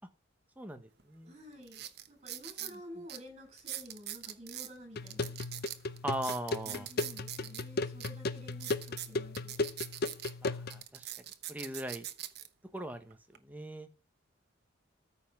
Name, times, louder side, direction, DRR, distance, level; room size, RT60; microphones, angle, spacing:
voice 1, 0.6-1.3 2.6-3.0 6.0-6.9 10.4-11.1 11.5-12.1 12.7-13.9, right 1 dB, 10° right, 7 dB, 1.2 m, -40 dB
sound 1, 1.0-1.1 1.6-2.7 3.1-3.2 3.6-4.7 5.1-7.6 8.0-8.1 8.5-10.3 10.7-12.5 13.1-13.4, right 12 dB, 55° right, 1.0 m, -42 dB
voice 2, 1.3-5.4 6.6-9.6, equal, 30° right, 2 dB, 8.0 m, -51 dB
sound 2, 5.0-10.8, left 3 dB, 50° left, 0.7 m, -36 dB
14.0 x 5.4 x 6.0 m, 0.33 s
head